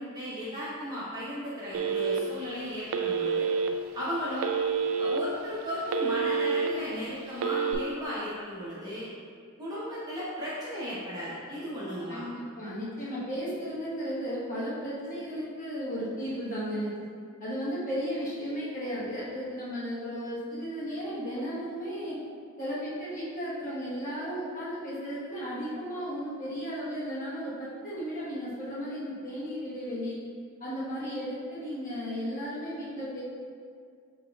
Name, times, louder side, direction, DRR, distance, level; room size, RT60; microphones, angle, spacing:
voice 1, 0.0-3.5 3.9-4.5 5.0-9.1 9.6-12.2, equal, 20° right, -9 dB, 0.9 m, -35 dB
Telephone, 1.7-2.4 2.9-3.7 4.4-5.2 5.6-6.7 7.3-7.7, right 6 dB, 65° right, 0.3 m, -28 dB
voice 2, 12.1-16.9 17.4-22.2 22.6-30.2 30.6-33.2, equal, 35° left, -8 dB, 1.1 m, -34 dB
5.8 x 3.6 x 2.3 m, 2.2 s
head